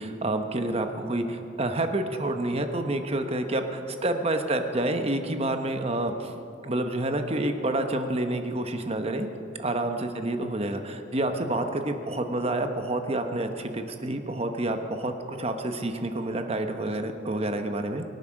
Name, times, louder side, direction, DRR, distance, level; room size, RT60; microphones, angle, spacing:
voice 1, 0.0-6.3 6.6-9.3 9.6-18.0, right 1 dB, 35° right, 6 dB, 1.1 m, -28 dB
22.5 x 9.4 x 6.4 m, 2.6 s
head